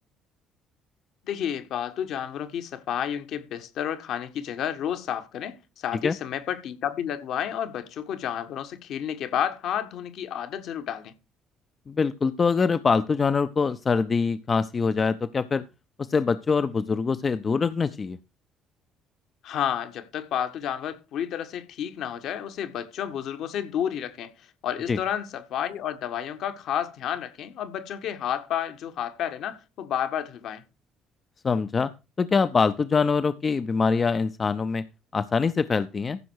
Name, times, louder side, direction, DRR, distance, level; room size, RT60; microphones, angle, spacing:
voice 1, 1.2-11.1 19.4-24.3 24.6-30.6, left 9 dB, 60° left, 1.4 m, -31 dB
voice 2, 11.9-15.6 16.0-18.2 24.9-25.0 31.4-31.9 32.2-34.8 35.1-36.2, left 5 dB, 35° left, 0.7 m, -24 dB
15.0 x 6.1 x 4.7 m
hypercardioid pair, 50°, 0 cm